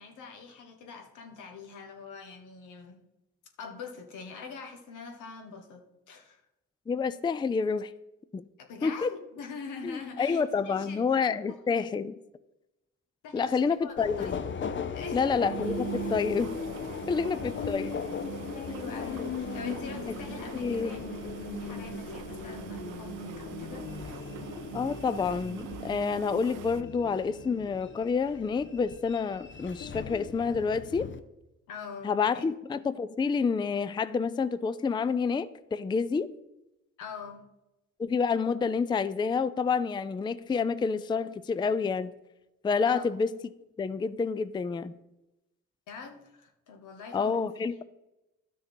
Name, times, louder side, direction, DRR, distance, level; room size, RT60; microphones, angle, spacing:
voice 1, 0.0-3.0 3.6-6.4 8.6-11.0 13.2-14.4 14.8-15.4 17.7-17.8 18.5-21.1 21.6-24.4 31.7-32.4 37.0-37.5 42.8-43.1 45.9-47.8, left 5 dB, 85° left, 5 dB, 1.5 m, -44 dB
voice 2, 6.9-7.9 8.3-8.4 8.8-9.1 9.8-12.2 13.3-14.3 15.1-16.5 17.1-17.9 20.5-20.9 24.7-31.1 32.0-36.3 38.0-42.1 42.6-43.3 43.8-44.9 47.1-47.8, left 5 dB, 15° left, 15 dB, 0.4 m, -28 dB
sound 1, 13.4-13.6 13.9-14.0 14.2-14.3 14.6-14.8 15.2-26.8, right 13 dB, 80° right, 0.6 m, -42 dB
Subway metro underground, 14.0-31.2, left 6 dB, 40° left, 0.7 m, -38 dB
12.0 x 6.3 x 4.4 m, 0.95 s
cardioid pair, 90°, 30 cm